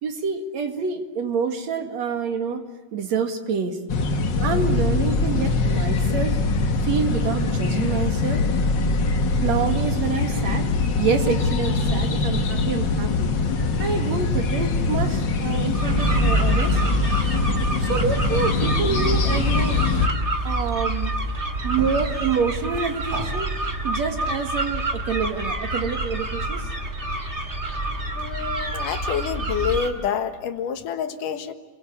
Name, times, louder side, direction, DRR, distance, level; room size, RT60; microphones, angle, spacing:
voice 1, 0.0-2.7 2.9-3.8 4.4-6.4 6.8-8.4 9.4-10.7 11.0-13.3 13.8-16.8 17.8-19.8 20.4-21.1 21.6-23.5 23.8-26.6 28.8-28.9, right 5 dB, 60° right, 6 dB, 3.1 m, -27 dB
sound 1, 3.9-20.1, left 3 dB, 45° left, 1.7 m, -23 dB
sound 2, 15.7-29.9, right 1 dB, 25° right, 2.3 m, -26 dB
voice 2, 28.2-31.5, left 7 dB, 80° left, 8 dB, 3.1 m, -27 dB
29.0 x 23.0 x 8.6 m, 1.3 s
omnidirectional pair, 3.7 m